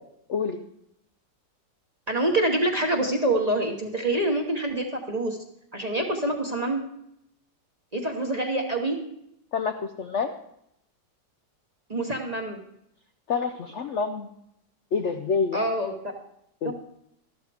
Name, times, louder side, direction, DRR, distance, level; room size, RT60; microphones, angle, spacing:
voice 1, 2.1-5.4 5.7-6.8 7.9-9.0 11.9-12.6 15.5-15.9 16.6-16.7, right 1 dB, 25° right, 2 dB, 1.0 m, -26 dB
voice 2, 9.5-10.3 13.3-14.3 14.9-15.7 16.6-16.7, left 5 dB, 60° left, 5 dB, 0.7 m, -27 dB
13.0 x 12.0 x 3.5 m, 0.76 s
omnidirectional pair, 1.9 m